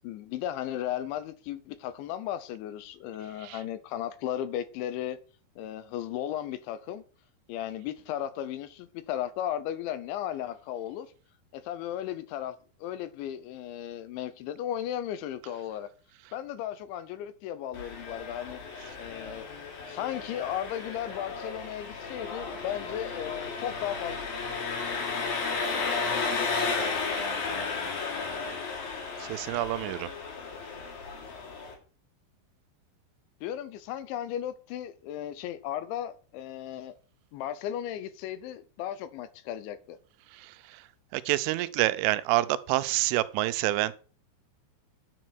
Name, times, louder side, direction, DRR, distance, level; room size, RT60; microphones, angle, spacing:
voice 1, 0.0-5.2 5.6-7.0 7.5-11.1 11.5-15.9 16.3-18.6 19.0-19.5 19.9-24.2 33.4-36.9 37.3-40.0, left 11 dB, 80° left, 3.1 m, -35 dB
Engine, 17.7-31.7, left 4 dB, 50° left, 4.4 m, -34 dB
voice 2, 29.2-30.1 40.3-40.8 41.1-43.9, right 16 dB, 85° right, 3.2 m, -28 dB
10.5 x 7.5 x 6.2 m
omnidirectional pair, 5.5 m